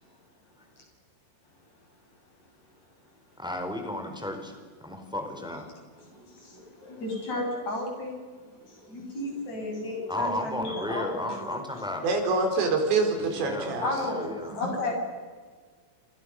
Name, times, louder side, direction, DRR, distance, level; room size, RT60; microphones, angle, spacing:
voice 1, 3.4-4.5 4.8-5.7 10.1-12.0 13.2-14.6, left 1 dB, ahead, 4 dB, 3.6 m, -34 dB
voice 2, 6.1-8.2 8.7-11.5 13.8-14.9, left 2 dB, 35° left, 1 dB, 8.7 m, -33 dB
voice 3, 12.0-13.8, right 3 dB, 70° right, 4 dB, 6.6 m, -25 dB
30.0 x 28.5 x 6.6 m, 1.5 s
omnidirectional pair, 5.4 m